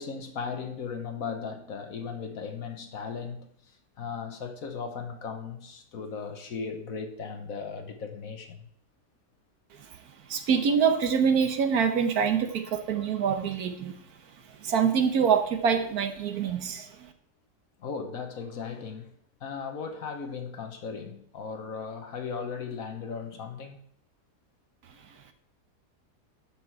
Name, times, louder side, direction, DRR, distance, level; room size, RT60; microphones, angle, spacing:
voice 1, 0.0-8.7 17.8-23.8, left 5 dB, 60° left, 1.4 m, -37 dB
voice 2, 10.3-14.0 14.6-16.9, right 6 dB, 65° right, 1.4 m, -25 dB
12.0 x 6.2 x 4.6 m
omnidirectional pair, 1.8 m